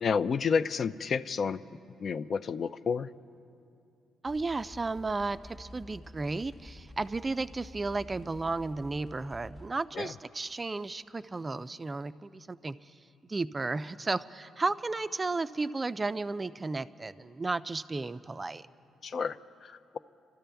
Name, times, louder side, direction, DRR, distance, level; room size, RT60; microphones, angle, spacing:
voice 1, 0.0-1.6 2.0-3.1 10.0-10.1 19.0-20.0, left 6 dB, 50° left, 13 dB, 0.4 m, -30 dB
voice 2, 4.2-12.9 13.2-18.7, right 3 dB, 25° right, 13 dB, 0.3 m, -34 dB
sound 1, 4.3-9.7, left 1 dB, 25° left, 0.9 m, -50 dB
27.0 x 13.0 x 3.4 m, 2.6 s
cardioid pair, 90°, 0 cm